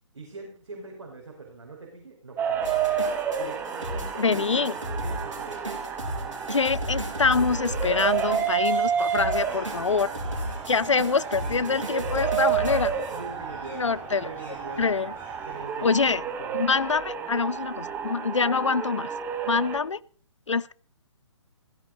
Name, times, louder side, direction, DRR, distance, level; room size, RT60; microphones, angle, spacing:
voice 1, 0.1-2.7 3.4-5.6 9.3-10.0 11.3-12.4 13.1-15.1 15.4-16.6, right 3 dB, 60° right, 5.5 m, -43 dB
sound 1, 2.4-19.8, right 7 dB, 10° right, 1.4 m, -30 dB
sound 2, 2.6-13.5, right 1 dB, 75° right, 5.0 m, -35 dB
voice 2, 4.2-4.7 6.5-10.1 10.7-12.9 13.8-14.3 14.8-15.1 15.8-16.2 16.5-19.1 19.4-20.0 20.5-20.7, left 5 dB, 70° left, 0.7 m, -25 dB
sound 3, 7.3-15.7, left 2 dB, 10° left, 5.0 m, -49 dB
16.5 x 15.5 x 4.1 m
figure-of-eight pair, 130°, 16 cm